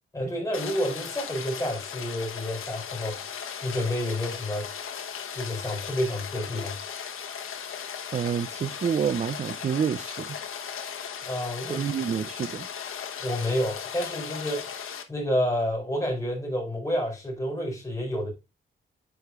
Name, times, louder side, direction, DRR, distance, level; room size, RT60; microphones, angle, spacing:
voice 1, 0.1-3.3 3.6-4.7 5.3-6.7 11.3-11.9 13.2-18.3, equal, 15° left, 4.4 m, -29 dB
Rain, 0.5-15.0, left 7 dB, 80° left, 1.1 m, -37 dB
voice 2, 8.1-10.4 11.7-12.7, right 7 dB, 35° right, 0.3 m, -28 dB
9.0 x 5.0 x 2.4 m
wide cardioid pair, 135°, 21 cm